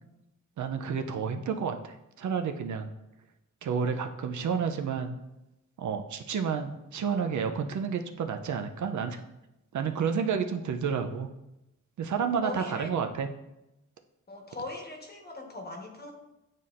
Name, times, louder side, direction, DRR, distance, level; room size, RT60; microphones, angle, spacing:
voice 1, 0.6-2.9 3.6-5.1 5.8-9.2 9.7-11.3 12.0-13.3, right 6 dB, 70° right, 6 dB, 0.6 m, -30 dB
voice 2, 12.4-12.9 14.3-16.1, left 2 dB, 30° left, 1 dB, 1.2 m, -40 dB
9.0 x 4.2 x 2.5 m, 0.94 s
wide cardioid pair, 115°, 31 cm